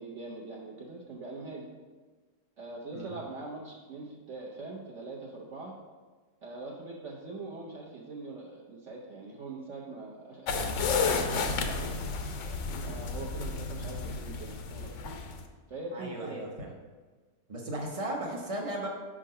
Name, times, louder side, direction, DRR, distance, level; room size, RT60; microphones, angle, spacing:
voice 1, 0.0-1.7 2.6-5.7 6.4-11.9 12.8-15.1 15.7-16.5, right 3 dB, 55° right, -3 dB, 1.0 m, -42 dB
sound 1, 10.5-15.4, left 4 dB, 65° left, 0.8 m, -32 dB
voice 2, 15.9-16.7 17.5-18.9, right 1 dB, 30° right, 0 dB, 0.7 m, -36 dB
5.2 x 3.8 x 5.5 m, 1.4 s
omnidirectional pair, 1.6 m